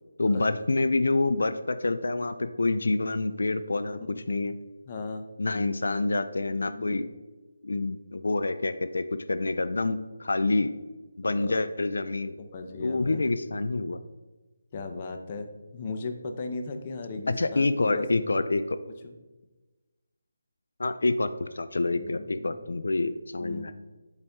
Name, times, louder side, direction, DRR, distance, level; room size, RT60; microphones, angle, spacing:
voice 1, 0.2-4.0 4.3-4.5 5.4-7.1 7.6-10.7 11.2-12.4 12.8-14.0 17.3-18.8 20.8-23.7, left 2 dB, 70° left, 10 dB, 0.4 m, -27 dB
voice 2, 3.9-4.2 4.9-5.3 6.7-7.0 11.2-11.6 12.4-13.2 14.7-15.5 15.7-18.4 19.0-19.1 21.9-22.6 23.4-23.7, left 3 dB, 30° left, 5 dB, 0.7 m, -37 dB
7.8 x 4.2 x 3.5 m, 1.2 s
figure-of-eight pair, 160°, 0 cm